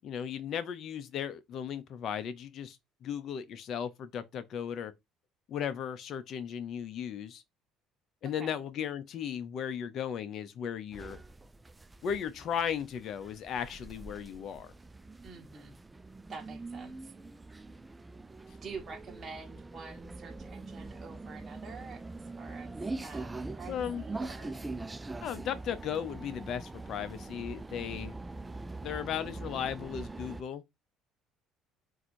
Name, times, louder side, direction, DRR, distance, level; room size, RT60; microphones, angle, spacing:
voice 1, 0.0-4.9 5.5-7.4 8.2-11.2 12.0-14.7 23.7-24.0 25.2-28.1 28.8-30.6, left 8 dB, 55° left, 0.7 m, -36 dB
voice 2, 8.2-8.6 15.2-15.8 16.3-17.2 18.6-22.0 22.4-22.8 23.0-24.6, right 4 dB, 35° right, 1.2 m, -47 dB
sound 1, 10.9-30.4, right 2 dB, 15° right, 0.3 m, -43 dB
3.9 x 2.7 x 4.5 m
supercardioid pair, 100°, 0 cm